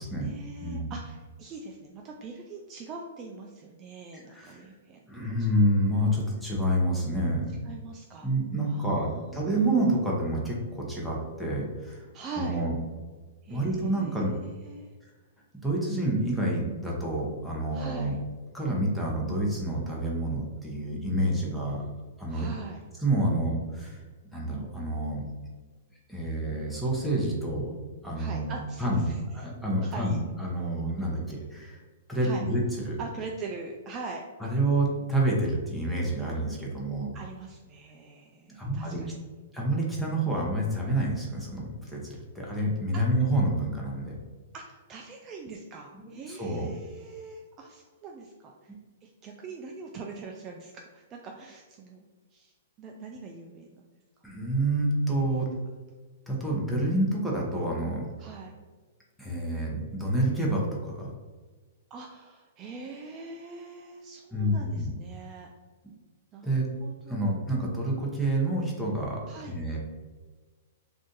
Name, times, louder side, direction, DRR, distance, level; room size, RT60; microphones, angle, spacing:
voice 1, 0.0-5.0 5.4-5.5 7.6-8.3 8.6-9.7 12.1-12.6 13.4-14.9 17.7-18.2 22.3-22.8 28.2-29.2 29.8-30.2 32.2-32.4 33.0-34.2 37.1-39.1 42.9-43.0 44.5-48.7 49.0-52.1 52.3-52.5 52.8-53.7 55.3-55.4 58.2-58.6 61.9-65.5 66.3-66.5 66.8-67.4 69.3-69.6, right 4 dB, 25° right, 1 dB, 0.3 m, -42 dB
voice 2, 0.6-0.9 4.1-4.7 5.1-7.5 8.2-12.1 12.4-12.7 13.5-14.3 15.6-18.2 18.5-21.9 22.2-22.5 23.0-24.0 24.3-25.2 26.1-27.7 28.0-28.5 28.8-31.8 32.1-33.0 34.4-37.2 38.5-39.0 39.5-44.2 46.0-46.7 54.2-55.5 56.3-58.1 59.2-61.1 64.3-64.9 66.4-66.7 67.1-69.8, right 1 dB, ahead, -4 dB, 0.7 m, -28 dB
2.6 x 2.4 x 3.8 m, 1.4 s
hypercardioid pair, 140°, 0 cm